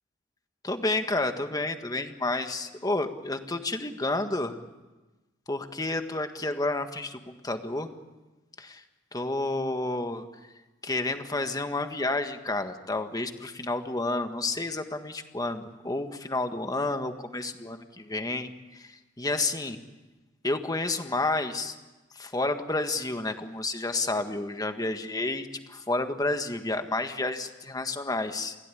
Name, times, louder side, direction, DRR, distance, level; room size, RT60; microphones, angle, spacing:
voice 1, 0.6-4.6 5.5-7.9 8.6-8.8 9.1-10.2 10.8-18.9 19.2-19.8 20.4-21.7 22.1-28.5, left 2 dB, 20° left, 7 dB, 1.6 m, -30 dB
29.0 x 16.0 x 9.9 m, 1.2 s
head